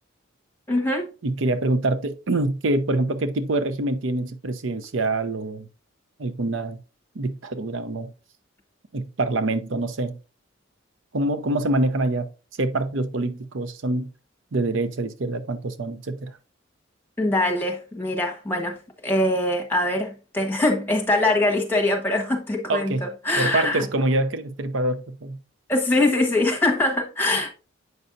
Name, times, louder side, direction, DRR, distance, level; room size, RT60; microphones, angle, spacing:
voice 1, 0.7-1.1 17.2-18.8 19.0-23.8 25.7-27.5, left 1 dB, 10° left, 1.2 m, -23 dB
voice 2, 1.2-5.7 6.2-6.8 7.2-8.1 8.9-10.2 11.1-12.3 12.6-14.1 14.5-16.3 22.7-23.1 23.4-25.4, right 2 dB, 70° right, 0.6 m, -25 dB
8.0 x 5.4 x 2.6 m
head